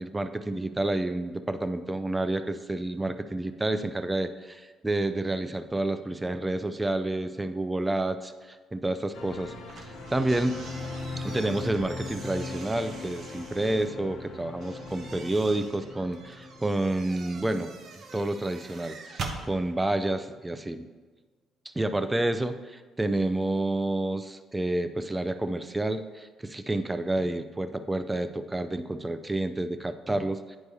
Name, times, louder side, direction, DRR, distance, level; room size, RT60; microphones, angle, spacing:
voice 1, 0.0-10.6 11.2-17.7 18.1-20.9 21.7-30.6, right 2 dB, 15° right, 10 dB, 0.4 m, -29 dB
sound 1, 9.1-18.3 18.6-18.7, left 3 dB, 70° left, 0.9 m, -40 dB
sound 2, 9.7-13.9 14.6-19.4, right 4 dB, 60° right, 0.8 m, -44 dB
9.4 x 4.6 x 2.8 m, 1.4 s
hypercardioid pair, 55°, 0 cm